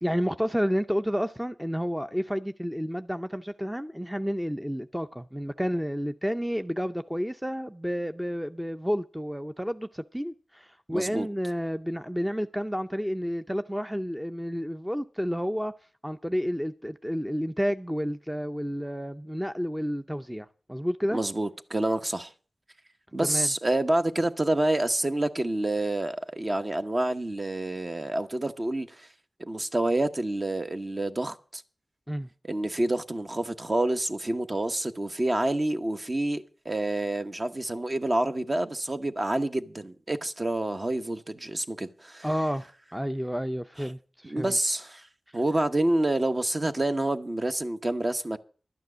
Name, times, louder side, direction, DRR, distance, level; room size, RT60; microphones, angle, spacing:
voice 1, 0.0-15.7 16.0-21.2 23.2-23.5 32.1-32.3 42.2-44.6 45.3-45.4, equal, 5° right, 0.5 m, -30 dB
voice 2, 10.9-11.3 21.1-22.3 23.1-29.1 29.4-31.6 32.5-42.3 44.2-45.1 45.3-48.4, right 1 dB, 35° right, 1.0 m, -28 dB
12.0 x 9.3 x 6.2 m
wide cardioid pair, 70°, 0 cm